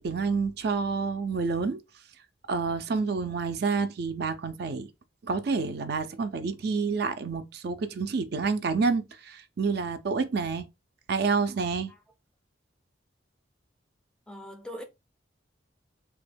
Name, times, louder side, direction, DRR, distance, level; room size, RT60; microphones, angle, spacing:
voice 1, 0.0-1.8 2.5-4.9 5.2-10.7 11.1-11.9, right 4 dB, 55° right, 0.4 m, -28 dB
voice 2, 14.3-14.8, equal, 5° left, 0.4 m, -41 dB
3.3 x 2.2 x 3.3 m
head